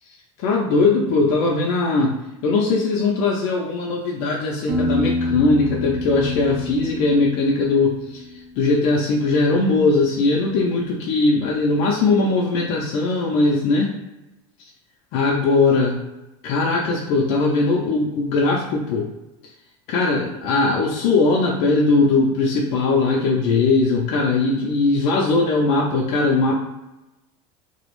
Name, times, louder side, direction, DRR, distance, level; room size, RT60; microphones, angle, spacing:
voice 1, 0.4-2.2 2.4-8.2 8.6-13.9 15.1-16.0 16.4-19.1 19.9-26.5, left 3 dB, 50° left, -3 dB, 0.4 m, -20 dB
Piano, 4.7-8.4, left 1 dB, 55° right, 0.6 m, -27 dB
2.4 x 2.0 x 3.0 m, 0.98 s
cardioid pair, 165°, 14 cm